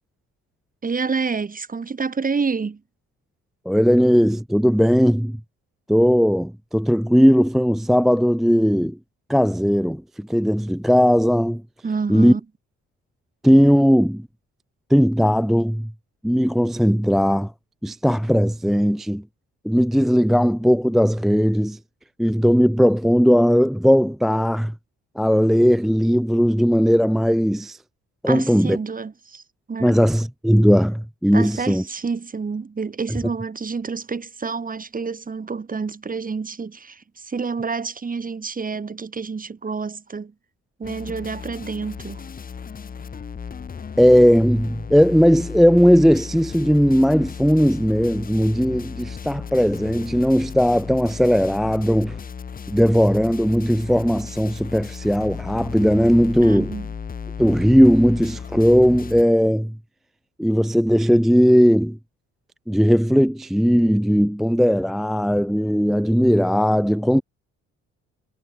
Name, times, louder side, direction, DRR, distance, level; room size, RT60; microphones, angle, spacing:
voice 1, 0.8-2.8 11.8-12.4 28.3-29.4 29.7-30.0 31.3-40.3 40.8-42.2 56.4-56.9, right 5 dB, 30° right, 1.8 m, -28 dB
voice 2, 3.7-5.4 5.9-9.0 9.3-11.6 12.1-12.3 13.4-14.3 14.9-15.9 16.2-17.5 17.8-19.2 19.6-21.8 22.2-24.7 25.2-27.8 28.2-28.8 29.8-31.8 44.0-52.2 52.7-56.7 57.4-59.8 60.4-62.0 62.7-67.2, equal, ahead, 0.3 m, -18 dB
sound 1, 40.8-59.2, left 6 dB, 30° left, 0.8 m, -35 dB
cardioid pair, 90°, 30 cm